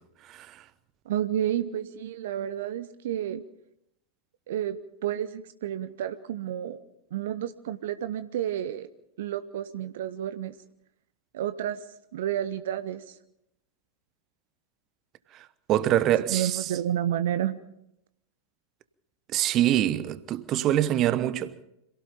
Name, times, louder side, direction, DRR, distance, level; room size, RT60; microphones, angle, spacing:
voice 1, 1.1-3.4 4.5-6.8 7.1-8.9 9.2-10.6 11.3-11.8 12.1-13.2 16.3-17.6, right 11 dB, 55° right, 0.8 m, -30 dB
voice 2, 15.7-16.6 19.3-21.6, right 12 dB, 35° right, 1.0 m, -24 dB
26.5 x 17.5 x 5.6 m
figure-of-eight pair, 90°, 0 cm